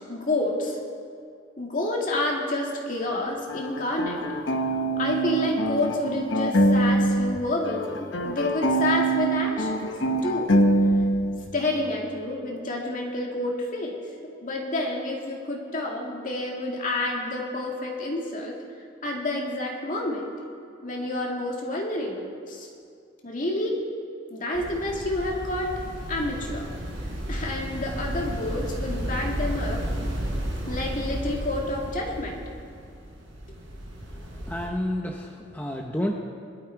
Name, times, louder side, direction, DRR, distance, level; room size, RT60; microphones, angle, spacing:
voice 1, 0.1-0.8 1.6-4.2 5.0-9.9 10.2-10.6 11.5-14.0 14.4-18.6 19.0-20.4 20.8-22.7 23.2-23.8 24.3-25.8 26.1-26.7 27.3-29.8 30.7-32.4, left 1 dB, 45° left, -1 dB, 2.3 m, -29 dB
sound 1, 3.5-7.4 7.6-11.5, right 1 dB, 65° left, 1.0 m, -24 dB
sound 2, 24.5-34.7, equal, 85° right, 4.4 m, -33 dB
voice 2, 34.1-36.2, left 1 dB, 10° left, 1 dB, 0.8 m, -30 dB
20.0 x 12.0 x 4.7 m, 2.4 s
head